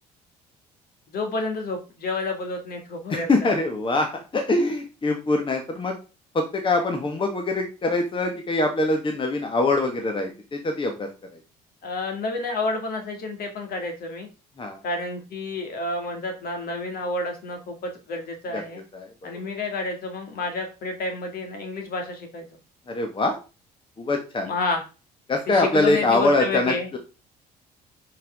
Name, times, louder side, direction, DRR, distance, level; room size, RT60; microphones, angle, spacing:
voice 1, 1.1-3.5 11.8-14.3 14.8-18.8 19.2-22.5 24.4-24.8 25.5-26.9, left 2 dB, 45° left, 4 dB, 2.2 m, -30 dB
voice 2, 3.1-5.9 6.3-11.1 14.6-14.8 18.5-18.6 18.9-19.3 22.9-23.4 24.0-24.5 25.3-27.0, left 2 dB, 25° left, 4 dB, 1.6 m, -24 dB
7.4 x 5.5 x 3.6 m, 0.32 s
figure-of-eight pair, 50°, 21 cm